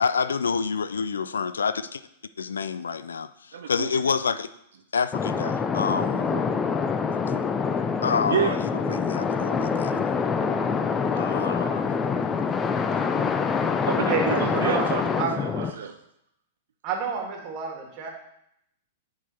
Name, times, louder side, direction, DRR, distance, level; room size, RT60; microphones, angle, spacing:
voice 1, 0.0-2.0 2.4-3.3 3.7-4.5 4.9-6.2 8.0-8.6 8.9-10.0 11.1-11.9, left 5 dB, 75° left, 14 dB, 0.3 m, -27 dB
voice 2, 3.5-4.2 6.0-6.6 8.3-8.6 13.9-16.0, right 7 dB, 65° right, 6 dB, 0.5 m, -30 dB
sound 1, 5.1-15.7, left 5 dB, 20° left, 0.5 m, -25 dB
voice 3, 14.1-14.9 15.2-15.3 16.8-18.1, right 5 dB, 40° right, 1 dB, 1.6 m, -29 dB
8.3 x 3.8 x 4.3 m, 0.76 s
figure-of-eight pair, 100°, 0 cm